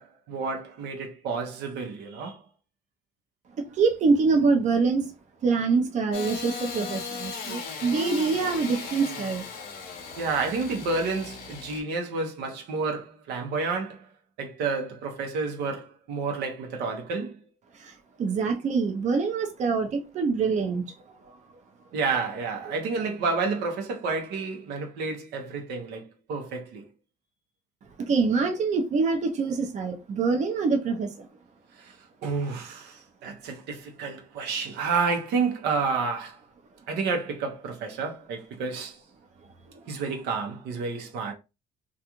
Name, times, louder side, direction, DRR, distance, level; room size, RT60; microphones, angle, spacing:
voice 1, 0.0-2.4 10.2-14.1 14.4-17.4 21.9-26.9 31.8-31.9 32.2-36.4 36.9-39.0 39.9-41.3, right 4 dB, 80° right, 0.8 m, -30 dB
voice 2, 3.6-5.1 5.4-9.5 10.1-10.2 17.8-20.9 28.0-31.3, right 4 dB, 45° right, 0.6 m, -25 dB
Engine starting / Sawing, 6.1-11.8, left 5 dB, 60° left, 0.8 m, -37 dB
2.4 x 2.4 x 2.8 m
cardioid pair, 110°, 17 cm